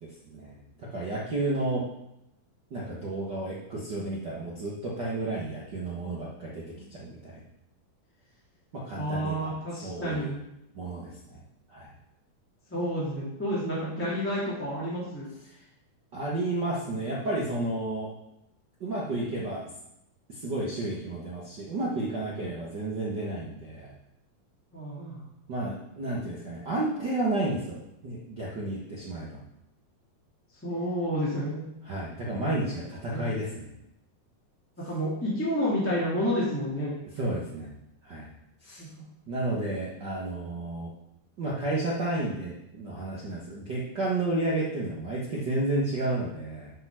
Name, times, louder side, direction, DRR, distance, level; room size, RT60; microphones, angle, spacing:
voice 1, 0.0-1.9 2.7-7.4 8.7-9.5 9.8-10.3 10.7-11.4 11.7-11.9 15.4-15.6 16.1-18.1 18.8-19.7 20.3-23.9 25.5-29.4 31.8-33.7 37.1-37.7 38.0-38.3 38.6-38.9 39.3-40.9 41.4-46.7, right 2 dB, 70° right, -5 dB, 1.0 m, -32 dB
voice 2, 8.9-10.4 12.7-15.3 24.7-25.2 30.6-31.6 33.1-33.2 34.8-36.9 38.8-39.0, equal, 5° left, -8 dB, 1.9 m, -30 dB
8.7 x 5.8 x 6.2 m, 0.85 s
omnidirectional pair, 4.2 m